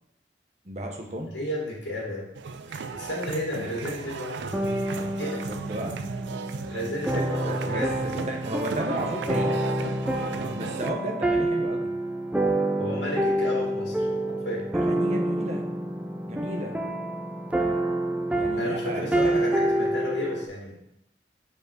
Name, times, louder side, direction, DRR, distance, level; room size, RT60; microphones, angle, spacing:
voice 1, 0.6-1.3 5.5-6.0 7.4-9.6 10.5-11.9 14.7-15.7 16.3-16.8 18.3-19.5, equal, 40° right, 2 dB, 0.9 m, -34 dB
voice 2, 1.3-2.3 2.7-4.7 5.2-5.4 6.7-8.3 12.8-14.0 14.3-14.7 18.6-20.8, left 1 dB, 85° left, -3 dB, 1.7 m, -33 dB
sound 1, 2.4-10.9, right 5 dB, 85° right, 0.4 m, -35 dB
sound 2, 4.5-20.5, right 1 dB, 10° right, 0.4 m, -28 dB
5.1 x 4.7 x 4.6 m, 0.79 s
head